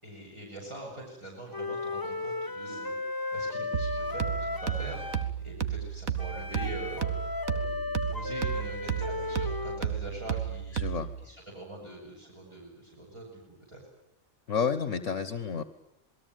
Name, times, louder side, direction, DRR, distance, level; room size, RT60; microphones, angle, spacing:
voice 1, 0.0-13.8, right 1 dB, 20° right, -3 dB, 7.0 m, -44 dB
Wind instrument woodwind instrument, 1.5-5.3 6.2-9.8, left 3 dB, 20° left, 0.9 m, -35 dB
sound 1, 3.7-11.2, right 9 dB, 85° right, 1.9 m, -33 dB
voice 2, 10.7-11.1 14.5-15.6, left 6 dB, 60° left, 12 dB, 1.6 m, -30 dB
27.5 x 20.5 x 9.3 m, 0.85 s
omnidirectional pair, 1.4 m